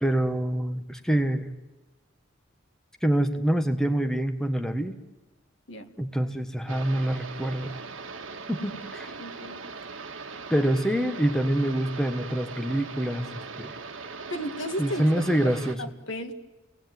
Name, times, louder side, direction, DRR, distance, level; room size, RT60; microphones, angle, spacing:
voice 1, 0.0-1.5 3.0-4.9 6.0-7.8 8.5-9.2 10.5-13.8 14.8-15.8, right 1 dB, 5° left, 6 dB, 1.2 m, -26 dB
sound 1, 6.7-15.8, right 4 dB, 85° right, 1.6 m, -40 dB
voice 2, 9.2-9.6 14.3-15.0 15.8-16.3, equal, 70° left, 5 dB, 2.1 m, -34 dB
30.0 x 18.5 x 9.3 m, 1.1 s
head